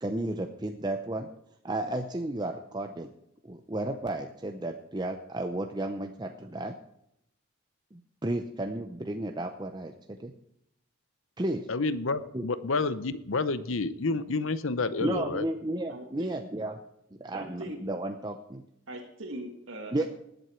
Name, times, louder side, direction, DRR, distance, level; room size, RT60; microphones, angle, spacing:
voice 1, 0.0-1.3 1.6-3.1 3.4-6.8 7.9-10.3 11.4-11.7 12.3-12.5 15.0-16.7 17.2-18.6 19.9-20.1, right 1 dB, 20° right, 5 dB, 0.6 m, -33 dB
voice 2, 11.7-15.5, left 3 dB, 70° left, 14 dB, 0.8 m, -29 dB
voice 3, 15.9-16.4 17.3-17.8 18.9-20.1, right 1 dB, 70° right, -2 dB, 1.9 m, -40 dB
20.0 x 7.9 x 4.5 m, 0.81 s
head